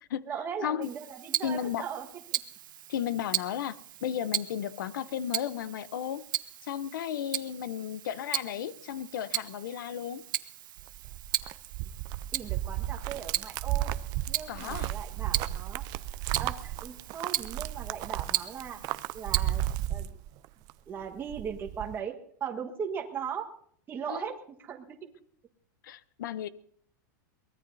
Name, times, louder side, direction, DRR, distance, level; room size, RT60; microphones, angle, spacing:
voice 1, 0.3-2.0 2.3-2.4 12.3-13.9 14.3-15.8 16.2-18.8 19.1-19.6 19.9-20.2 20.9-22.1 22.4-23.5 23.9-24.3 24.6-25.0, right 7 dB, 20° right, 1.5 m, -38 dB
Tick-tock, 0.8-19.9, right 12 dB, 85° right, 0.9 m, -37 dB
voice 2, 1.4-1.8 2.9-6.2 6.6-10.2 14.5-14.9 24.1-24.4 25.8-26.5, left 10 dB, 85° left, 0.8 m, -34 dB
sound 1, 10.8-20.7 21.0-21.9, right 14 dB, 40° right, 0.5 m, -34 dB
23.0 x 19.5 x 2.7 m
supercardioid pair, 150°, 10 cm